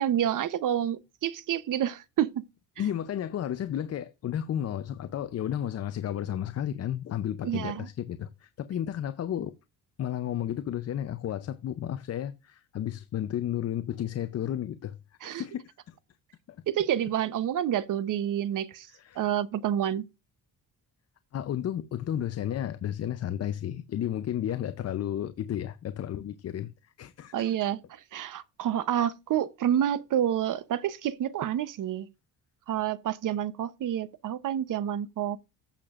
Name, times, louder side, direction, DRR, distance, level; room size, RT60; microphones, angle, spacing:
voice 1, 0.0-2.5 7.4-7.9 15.2-15.4 16.7-18.9 19.2-20.1 27.3-32.1 32.7-35.4, right 10 dB, 50° right, 0.8 m, -28 dB
voice 2, 2.8-9.6 10.0-15.0 15.2-15.9 16.5-16.6 18.9-19.3 21.3-26.7 27.0-27.7, left 10 dB, 40° left, 0.6 m, -33 dB
15.0 x 6.7 x 2.5 m
cardioid pair, 155°, 39 cm